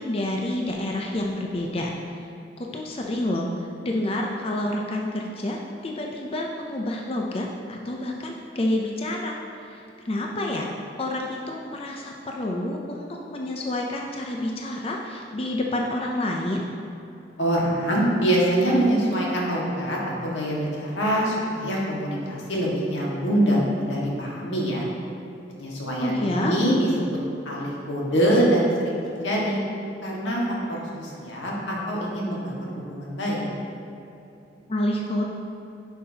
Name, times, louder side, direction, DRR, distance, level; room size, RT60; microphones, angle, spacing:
voice 1, 0.0-1.9 2.6-9.4 9.7-10.7 11.0-16.7 26.0-26.5 34.7-35.2, left 1 dB, 30° left, 0 dB, 0.5 m, -28 dB
voice 2, 17.4-24.9 25.6-27.2 27.4-29.6 30.0-33.5, right 1 dB, 90° left, -4 dB, 1.6 m, -24 dB
10.5 x 5.6 x 2.8 m, 2.8 s
head